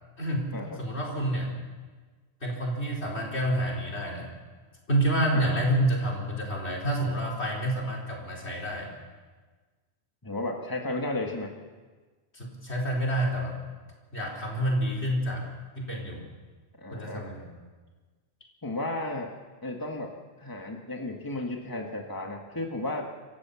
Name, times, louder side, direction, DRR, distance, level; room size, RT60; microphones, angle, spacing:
voice 1, 0.2-1.5 2.4-4.3 4.9-8.9 12.3-13.6 14.1-15.4 15.8-16.2 16.9-17.5, right 1 dB, 65° left, 0 dB, 4.8 m, -28 dB
voice 2, 10.2-11.6 16.8-17.3 18.6-19.3 19.6-23.1, left 2 dB, 20° left, 1 dB, 1.7 m, -34 dB
27.0 x 15.0 x 7.1 m, 1.3 s
omnidirectional pair, 1.2 m